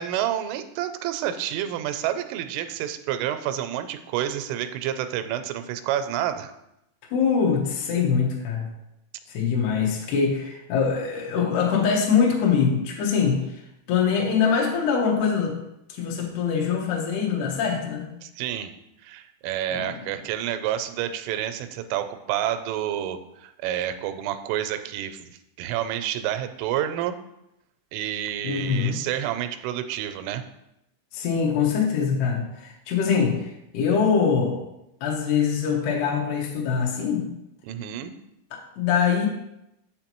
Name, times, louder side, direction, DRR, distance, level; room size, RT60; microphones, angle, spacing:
voice 1, 0.0-6.5 18.2-18.7 19.0-25.3 25.6-27.2 27.9-30.4 37.6-38.2, right 11 dB, 90° right, 9 dB, 3.1 m, -29 dB
voice 2, 7.1-8.7 9.3-13.6 13.9-15.6 15.9-18.1 19.7-20.0 28.4-29.0 31.1-33.5 33.7-34.6 35.0-37.3 38.5-39.3, left 6 dB, 70° left, 0 dB, 2.8 m, -23 dB
7.6 x 6.8 x 3.0 m, 0.86 s
omnidirectional pair, 5.5 m